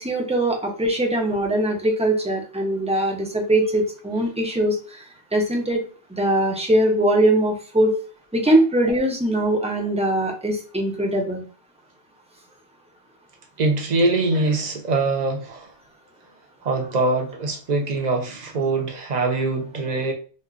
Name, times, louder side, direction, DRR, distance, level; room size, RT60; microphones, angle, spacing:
voice 1, 0.0-5.0 5.3-5.8 6.1-7.9 8.3-11.4, right 1 dB, 10° right, 0.4 m, -21 dB
voice 2, 13.6-15.7 16.6-20.1, right 2 dB, 45° right, 0.7 m, -23 dB
4.2 x 2.1 x 2.5 m
omnidirectional pair, 1.1 m